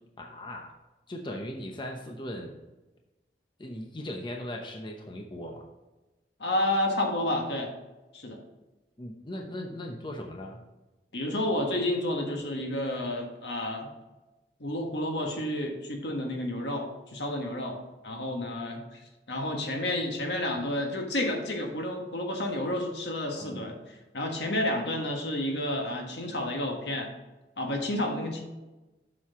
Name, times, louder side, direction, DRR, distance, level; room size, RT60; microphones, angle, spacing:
voice 1, 0.2-0.7 1.1-2.6 3.6-5.6 9.0-10.6 23.4-23.6, left 1 dB, 25° left, 1 dB, 0.8 m, -38 dB
voice 2, 6.4-7.7 8.1-8.4 11.1-13.9 14.6-17.8 18.0-19.0 19.3-27.1 27.6-28.4, left 1 dB, 75° left, 2 dB, 1.5 m, -30 dB
7.4 x 6.4 x 3.7 m, 1.1 s
head